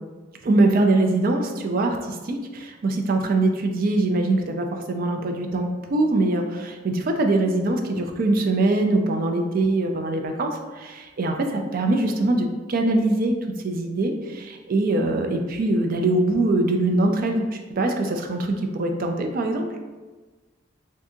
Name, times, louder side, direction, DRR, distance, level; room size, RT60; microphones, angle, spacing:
voice 1, 0.4-13.4 13.6-19.7, right 2 dB, 50° right, 4 dB, 0.4 m, -23 dB
2.6 x 2.6 x 3.5 m, 1.3 s
head